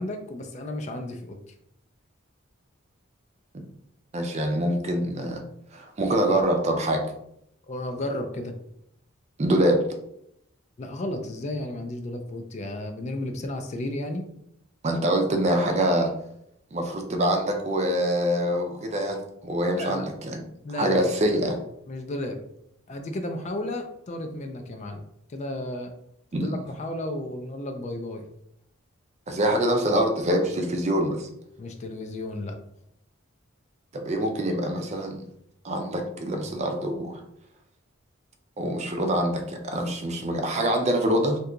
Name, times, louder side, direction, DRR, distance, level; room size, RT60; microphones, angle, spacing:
voice 1, 0.0-1.4 7.7-8.5 10.8-14.2 19.8-20.1 20.6-21.1 21.9-22.4 22.9-25.0 25.3-25.9 26.3-28.3 31.6-32.6, left 1 dB, 35° left, 5 dB, 0.3 m, -33 dB
voice 2, 4.1-5.4 5.7-7.0 9.4-9.8 14.8-16.1 16.7-20.4 20.8-21.6 26.3-26.6 29.3-31.3 33.9-35.2 35.6-37.2 38.6-41.4, right 1 dB, 35° right, 4 dB, 0.4 m, -25 dB
2.8 x 2.2 x 3.7 m, 0.75 s
head